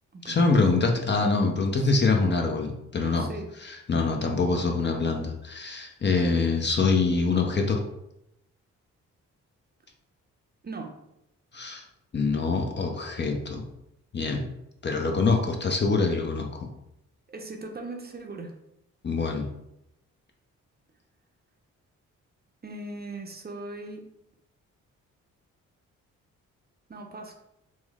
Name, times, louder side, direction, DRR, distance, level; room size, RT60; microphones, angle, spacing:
voice 1, 0.2-3.3 3.6-7.8 11.5-11.8 12.1-13.6 14.1-14.4 14.8-16.7 19.0-19.5, left 4 dB, 30° left, 3 dB, 0.5 m, -25 dB
voice 2, 3.2-3.5 10.6-11.0 17.3-18.5 22.6-24.1 26.9-27.3, right 2 dB, 30° right, 3 dB, 0.6 m, -39 dB
3.1 x 2.0 x 3.4 m, 0.83 s
supercardioid pair, 50°, 34 cm